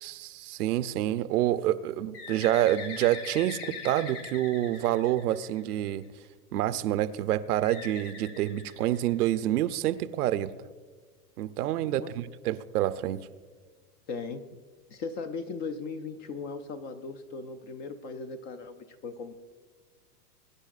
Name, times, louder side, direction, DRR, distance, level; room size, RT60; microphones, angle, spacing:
voice 1, 0.0-6.0 6.5-10.7 11.4-13.3, right 13 dB, 70° right, 13 dB, 0.7 m, -28 dB
Bird, 2.1-5.9 7.6-9.4, left 4 dB, 80° left, 2.3 m, -42 dB
voice 2, 11.8-12.1 14.1-14.4 14.9-19.3, left 4 dB, 20° left, 9 dB, 0.4 m, -38 dB
22.0 x 10.0 x 2.5 m, 1.5 s
hypercardioid pair, 130°, 46 cm